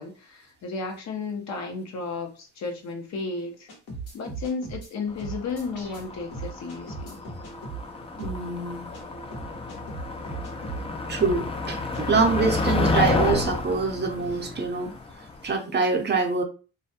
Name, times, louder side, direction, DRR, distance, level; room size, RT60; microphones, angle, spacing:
voice 1, 0.0-3.7 4.1-7.2, left 4 dB, 65° left, 3 dB, 0.8 m, -33 dB
sound 1, 3.7-4.9 5.2-6.0 6.3-7.8 8.2-8.4 8.9-9.0 9.3-10.8 11.2-11.4 11.9-12.0 12.3-13.5, right 3 dB, 85° left, 1.1 m, -37 dB
Motor vehicle (road), 5.2-15.5, left 3 dB, 20° left, 0.3 m, -30 dB
voice 2, 8.2-8.8 11.1-14.9 15.4-16.4, right 4 dB, 35° right, 4 dB, 0.6 m, -25 dB
2.4 x 2.2 x 2.7 m, 0.35 s
cardioid pair, 90°, 30 cm